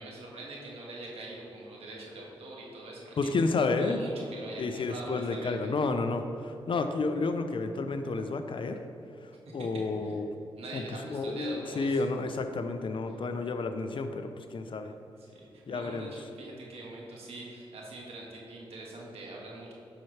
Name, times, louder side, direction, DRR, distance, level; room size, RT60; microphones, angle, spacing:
voice 1, 0.0-3.3 3.8-5.7 9.5-9.7 10.0-10.2 10.6-12.0 13.1-13.2 15.2-19.7, right 2 dB, 80° right, -3 dB, 1.6 m, -43 dB
voice 2, 3.2-4.0 4.6-8.8 9.5-10.3 10.7-10.8 11.1-14.9 15.7-16.1, left 3 dB, 55° left, 7 dB, 0.6 m, -31 dB
8.7 x 5.8 x 3.3 m, 2.8 s
cardioid pair, 60°, 10 cm